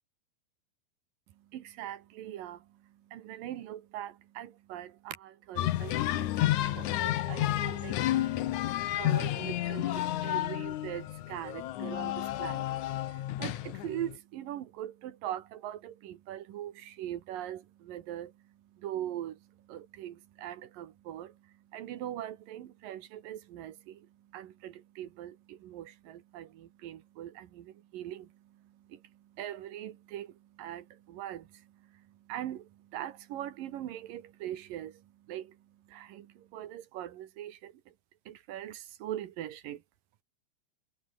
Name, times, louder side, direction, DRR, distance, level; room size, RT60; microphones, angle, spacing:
voice 1, 1.3-37.9 38.3-39.8, right 12 dB, 85° right, 3.1 m, -42 dB
sound 1, 5.6-14.2, left 14 dB, 70° left, 2.3 m, -31 dB
omnidirectional pair, 3.8 m